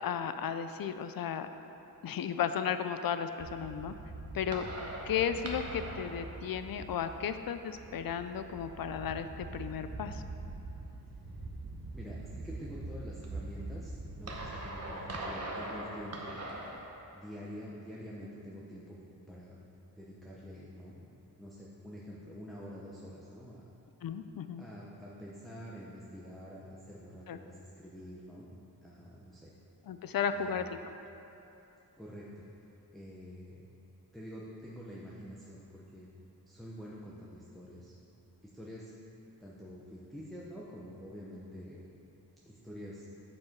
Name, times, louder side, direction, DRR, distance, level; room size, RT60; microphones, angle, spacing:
voice 1, 0.0-1.5 2.0-3.9 4.3-4.7 5.1-10.2 24.0-24.7 27.3-27.4 29.9-30.9, left 8 dB, 65° left, 10 dB, 0.5 m, -34 dB
sound 1, 3.4-16.8, right 2 dB, 40° right, 1.0 m, -42 dB
voice 2, 11.9-16.5 17.1-19.6 19.9-23.7 24.6-28.5 28.8-29.5 30.3-30.7 32.0-32.6 32.9-33.6 34.1-36.1 36.5-37.9 38.4-38.9 39.4-41.8 42.4-43.1, equal, ahead, -5 dB, 0.7 m, -47 dB
7.6 x 7.1 x 4.6 m, 2.9 s
wide cardioid pair, 140°, 38 cm